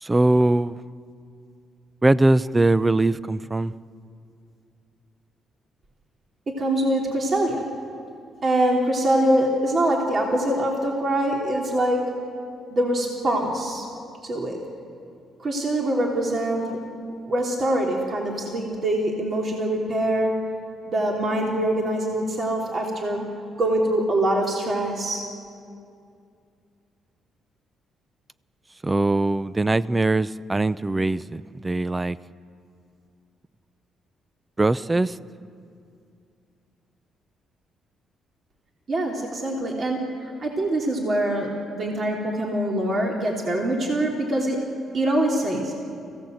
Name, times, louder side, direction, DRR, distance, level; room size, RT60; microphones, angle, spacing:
voice 1, 0.0-0.8 2.0-3.7 28.8-32.2 34.6-35.2, right 2 dB, 20° right, 0.5 m, -21 dB
voice 2, 6.6-7.6 8.4-12.0 12.7-13.9 14.2-14.6 15.4-16.8 17.3-20.3 20.9-23.3 23.6-25.2 38.9-44.6 44.9-45.7, right 1 dB, 45° right, 3.1 m, -24 dB
25.5 x 16.5 x 7.8 m
cardioid pair, 90°, 0 cm